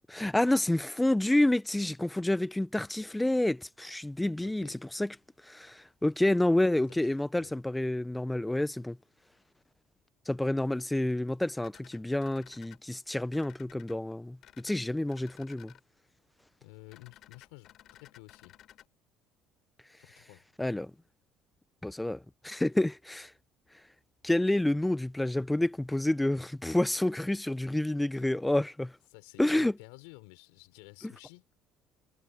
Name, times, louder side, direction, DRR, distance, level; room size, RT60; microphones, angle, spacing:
voice 1, 0.1-5.1 5.4-9.0 10.3-15.7 20.6-20.9 21.8-23.3 24.2-28.9 29.4-29.7, left 1 dB, 10° left, 0.8 m, -29 dB
voice 2, 4.4-4.8 6.7-7.0 7.4-7.5 16.6-17.7 18.0-18.6 20.0-20.4 28.0-28.2 29.1-31.5, left 25 dB, 90° left, 3.6 m, -52 dB
sound 1, 11.6-12.8 13.3-13.9 14.4-14.7 15.1-15.8 16.9-18.9, left 12 dB, 60° left, 4.0 m, -56 dB
supercardioid pair, 90°, 0 cm